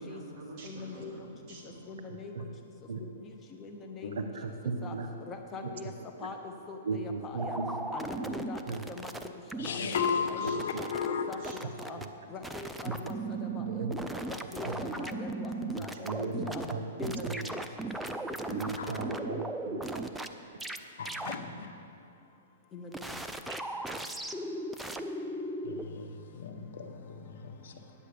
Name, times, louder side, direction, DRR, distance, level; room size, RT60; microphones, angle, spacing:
voice 1, 0.0-1.9 9.5-9.6 10.4-10.6 11.3-11.6 14.5-15.1 15.5-15.6 18.4-18.5, right 2 dB, 30° right, -4 dB, 2.8 m, -48 dB
voice 2, 0.6-1.1 1.9-2.5 3.6-4.1 4.8-4.9 5.3-5.9 6.2-6.4 6.7-7.6 7.9-8.6 8.9-9.1 9.7-9.8 10.3-10.4 11.3-12.0 12.3-13.8 14.3-14.7 15.0-15.5 15.8-16.7 17.0-17.4 22.7-23.0, left 4 dB, 20° left, 3 dB, 0.8 m, -42 dB
voice 3, 2.1-2.5 2.9-3.1 4.1-5.1 5.6-5.9 6.2-6.3 6.8-8.3 8.7-8.9 10.4-10.5 11.8-12.1 12.8-13.2 13.5-14.3 14.6-15.1 15.8-16.9 17.2-17.5 18.5-20.0, right 4 dB, 75° right, 6 dB, 1.0 m, -37 dB
sound 1, 7.4-9.7 9.9-11.1 11.3-12.1 12.4-16.7 17.0-20.3 20.6-20.8 21.1-21.4 22.9-25.9, right 2 dB, 5° right, 0.5 m, -37 dB
voice 4, 9.6-11.3 16.4-16.5 18.8-19.0 21.0-21.7 25.6-27.9, left 6 dB, 70° left, 5 dB, 1.2 m, -35 dB
9.8 x 8.8 x 6.8 m, 2.5 s
hypercardioid pair, 140°, 0 cm